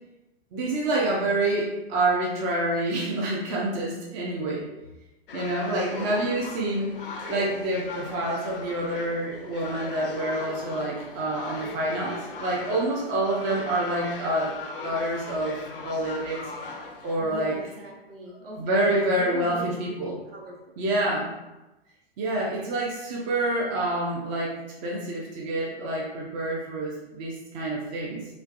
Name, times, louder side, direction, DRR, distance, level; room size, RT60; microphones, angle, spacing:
voice 1, 0.5-4.7 5.3-6.9 7.3-14.5 14.8-15.6 15.8-16.5 17.0-17.6 18.6-20.2 20.8-21.3 22.2-28.3, right 1 dB, 20° right, -3 dB, 0.3 m, -27 dB
sound 1, 5.3-17.1, left 4 dB, 60° left, 0.5 m, -39 dB
voice 2, 17.2-19.7 20.0-21.1, right 2 dB, 65° right, -3 dB, 0.9 m, -41 dB
3.1 x 2.4 x 2.4 m, 1.0 s
figure-of-eight pair, 100°, 31 cm